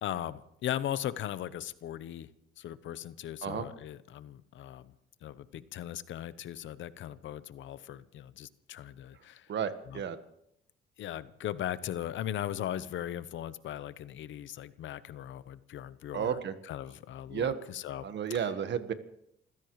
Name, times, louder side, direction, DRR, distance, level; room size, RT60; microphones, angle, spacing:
voice 1, 0.0-2.3 2.6-4.9 5.2-9.5 9.9-10.0 11.0-18.0, left 11 dB, 75° left, 15 dB, 0.9 m, -38 dB
voice 2, 9.5-10.2 16.1-16.5 17.3-17.5 18.0-18.9, right 8 dB, 65° right, 11 dB, 1.4 m, -32 dB
28.0 x 15.5 x 3.2 m, 0.74 s
cardioid pair, 90°, 20 cm